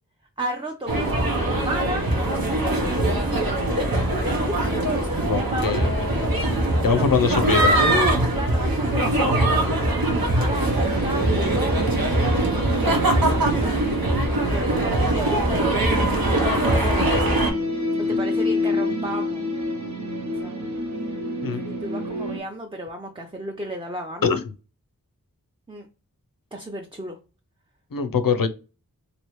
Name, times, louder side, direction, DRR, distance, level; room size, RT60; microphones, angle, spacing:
voice 1, 0.4-3.6 4.2-4.6 4.9-6.6 6.8-7.5 8.3-9.7 10.1-11.8 12.8-13.8 14.4-17.2 18.0-19.5 20.4-20.6 21.6-24.3 25.7-25.9 26.5-27.2, right 1 dB, 15° right, 2 dB, 0.5 m, -34 dB
sound 1, 0.9-17.5, right 1 dB, 85° right, 0.9 m, -22 dB
voice 2, 5.2-5.9 6.8-8.0 21.4-21.6 24.2-24.4 27.9-28.5, left 5 dB, 75° left, 10 dB, 0.5 m, -22 dB
sound 2, 10.5-22.4, equal, 55° right, 0.9 m, -29 dB
3.0 x 2.6 x 3.0 m, 0.32 s
wide cardioid pair, 45°, 34 cm